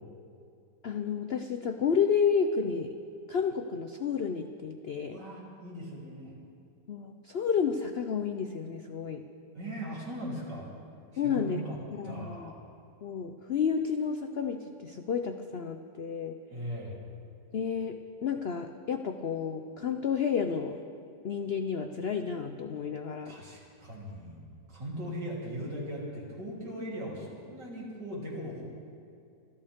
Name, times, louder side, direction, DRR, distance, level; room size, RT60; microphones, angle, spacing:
voice 1, 0.8-2.9 3.3-5.2 6.9-9.2 11.2-11.6 11.9-12.5 13.0-16.4 17.5-20.8 21.2-23.3, left 6 dB, 85° left, 7 dB, 0.5 m, -31 dB
voice 2, 5.1-6.3 9.5-10.7 11.1-11.8 12.0-12.6 16.5-17.0 23.2-24.4 24.7-28.6, equal, 70° right, -5 dB, 4.3 m, -39 dB
25.5 x 14.5 x 3.6 m, 2.4 s
omnidirectional pair, 1.9 m